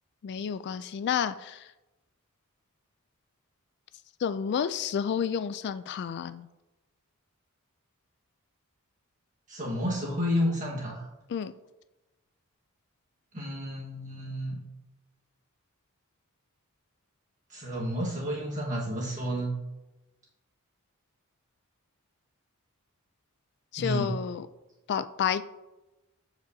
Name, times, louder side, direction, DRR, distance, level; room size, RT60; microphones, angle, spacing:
voice 1, 0.2-1.7 4.2-6.5 11.3-11.5 23.7-24.5 24.9-25.4, left 7 dB, 50° left, 13 dB, 0.3 m, -30 dB
voice 2, 9.5-11.0 13.3-14.6 17.5-19.5 23.8-24.1, equal, 35° right, -4 dB, 1.5 m, -31 dB
14.5 x 5.1 x 2.7 m, 1.0 s
head